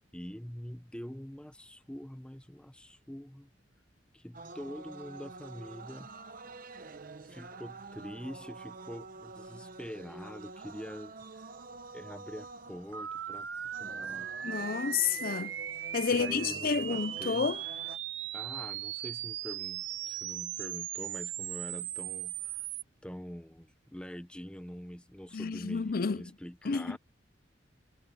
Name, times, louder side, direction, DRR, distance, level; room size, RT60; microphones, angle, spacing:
voice 1, 0.1-3.5 4.1-6.1 7.3-11.4 11.9-13.5 13.8-14.3 16.1-17.5 18.3-22.7 23.0-27.0, equal, 5° left, 1.0 m, -45 dB
sound 1, 4.3-18.0, right 3 dB, 50° right, 1.0 m, -48 dB
sound 2, 12.9-22.8, right 11 dB, 80° right, 0.8 m, -38 dB
voice 2, 14.4-15.5 15.9-17.6 25.3-26.2 26.6-27.0, left 5 dB, 50° left, 0.5 m, -30 dB
head